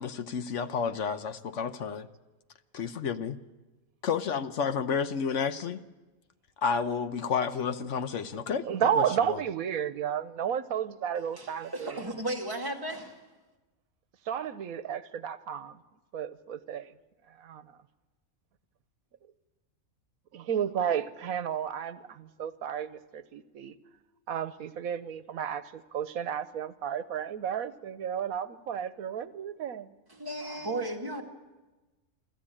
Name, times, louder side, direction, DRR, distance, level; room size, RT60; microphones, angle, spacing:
voice 1, 0.0-2.1 2.7-3.4 4.0-5.8 6.6-8.6 9.0-9.4, left 6 dB, 65° left, 1.1 m, -31 dB
voice 2, 8.5-12.2 14.3-15.8 16.1-16.9 17.4-17.6 20.3-23.7 24.3-29.9, right 8 dB, 85° right, 1.3 m, -32 dB
voice 3, 11.3-13.2 30.1-31.2, right 1 dB, 15° right, 2.2 m, -35 dB
25.5 x 14.0 x 8.7 m
omnidirectional pair, 1.4 m